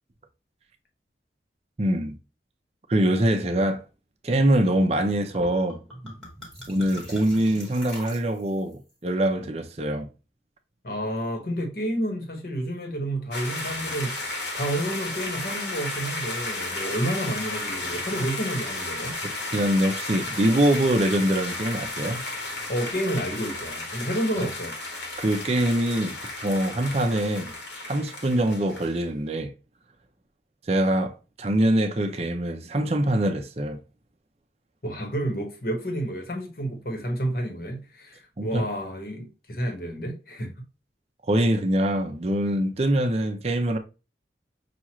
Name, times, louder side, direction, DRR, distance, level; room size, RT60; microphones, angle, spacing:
voice 1, 1.8-2.2 2.9-3.8 4.2-6.1 6.7-10.1 19.2-22.3 25.2-27.5 27.9-29.5 30.7-33.8 38.4-38.7 41.3-43.8, right 1 dB, 35° right, 0.5 m, -24 dB
sound 1, 5.3-5.4 5.7-8.7, equal, 5° left, 1.4 m, -43 dB
voice 2, 10.8-19.2 22.7-24.7 34.8-40.5, right 1 dB, 55° left, 1.2 m, -30 dB
sound 2, 13.3-28.9, left 2 dB, 80° left, 1.2 m, -33 dB
5.9 x 2.4 x 3.0 m
head